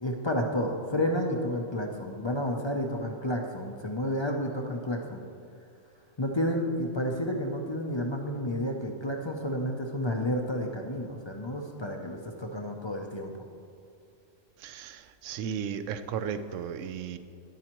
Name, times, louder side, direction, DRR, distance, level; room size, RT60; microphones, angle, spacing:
voice 1, 0.0-5.2 6.2-13.3, left 1 dB, 35° left, 1 dB, 0.4 m, -31 dB
voice 2, 14.6-17.2, right 7 dB, 75° right, 11 dB, 0.9 m, -35 dB
12.5 x 9.7 x 3.0 m, 2.5 s
omnidirectional pair, 1.3 m